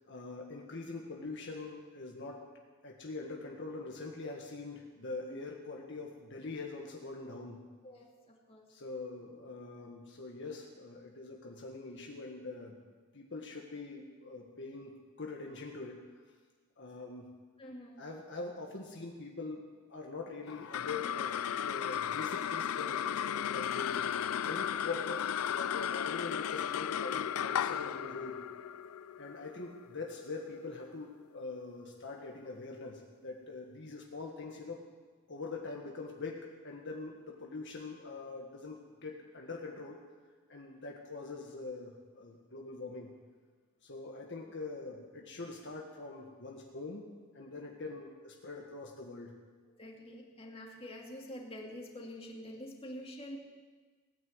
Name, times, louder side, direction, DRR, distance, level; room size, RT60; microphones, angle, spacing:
voice 1, 0.1-2.5 2.8-7.6 8.7-12.8 13.1-16.0 16.8-17.3 18.0-19.6 19.9-24.0 24.4-28.4 29.2-34.9 35.3-40.0 40.5-43.1 43.8-47.1 47.3-49.3, left 3 dB, 55° left, 0 dB, 1.7 m, -43 dB
voice 2, 7.8-8.6 17.6-18.0 49.8-53.4, left 1 dB, 25° left, -1 dB, 2.4 m, -46 dB
sound 1, 20.5-31.1, left 9 dB, 80° left, 0.4 m, -35 dB
18.0 x 9.9 x 8.0 m, 1.4 s
head